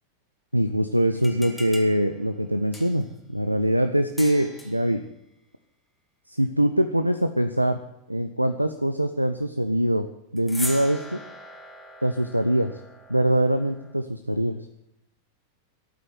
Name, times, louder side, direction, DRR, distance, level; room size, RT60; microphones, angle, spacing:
voice 1, 0.5-3.0 3.3-5.0 6.3-7.8 8.1-11.2 12.0-12.8 13.1-14.6, right 1 dB, 90° right, 9 dB, 0.7 m, -23 dB
sound 1, 1.1-3.2 4.2-4.9 10.4-13.9, left 1 dB, 5° left, 2.1 m, -40 dB
12.5 x 8.9 x 9.6 m, 0.81 s
figure-of-eight pair, 90°, 0 cm